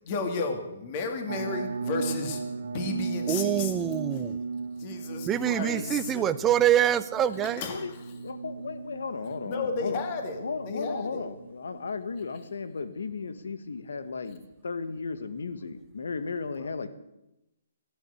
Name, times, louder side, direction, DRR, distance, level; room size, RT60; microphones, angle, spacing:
voice 1, 0.1-3.8 4.0-4.1 4.8-6.2 7.4-8.1 9.4-11.3 16.6-16.7, left 4 dB, 30° left, 5 dB, 2.2 m, -33 dB
sound 1, 1.3-12.2, right 4 dB, 80° right, 1.4 m, -36 dB
voice 2, 3.3-4.4 5.3-7.6, right 10 dB, 15° right, 12 dB, 0.6 m, -25 dB
voice 3, 8.2-10.0 10.4-16.9, left 4 dB, 85° left, 11 dB, 1.7 m, -35 dB
16.0 x 10.5 x 8.3 m, 0.92 s
hypercardioid pair, 165°, 0 cm